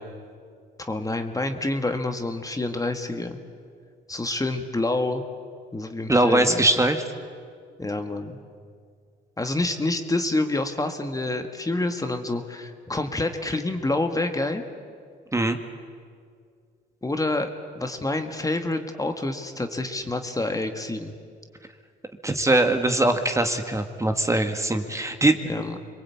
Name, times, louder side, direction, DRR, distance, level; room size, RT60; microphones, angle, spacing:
voice 1, 0.8-3.4 4.1-5.2 5.7-6.7 7.8-8.4 9.4-14.6 17.0-17.5 17.7-21.1 25.4-25.8, left 2 dB, 15° left, 6 dB, 1.8 m, -27 dB
voice 2, 6.1-7.0 15.3-15.6 22.2-25.4, right 1 dB, 15° right, 6 dB, 1.8 m, -21 dB
25.0 x 22.5 x 8.7 m, 2.1 s
cardioid pair, 90°, 20 cm